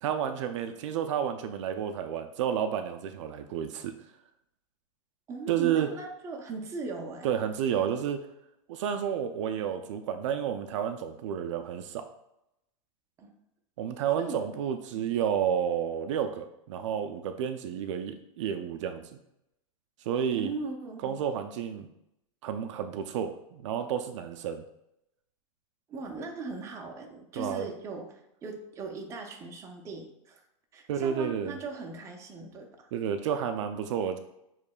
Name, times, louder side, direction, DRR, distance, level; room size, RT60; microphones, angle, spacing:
voice 1, 0.0-3.9 5.5-5.9 7.2-8.2 8.7-12.1 13.8-19.0 20.1-20.5 21.0-21.9 22.4-24.6 27.4-27.7 30.9-31.6 32.9-34.2, right 8 dB, 65° right, 8 dB, 0.4 m, -31 dB
voice 2, 5.3-7.3 13.2-13.3 14.1-14.4 20.3-21.1 25.9-30.4 30.7-32.9, right 3 dB, 15° right, 2 dB, 0.6 m, -39 dB
6.5 x 3.1 x 2.3 m, 0.83 s
supercardioid pair, 150°, 17 cm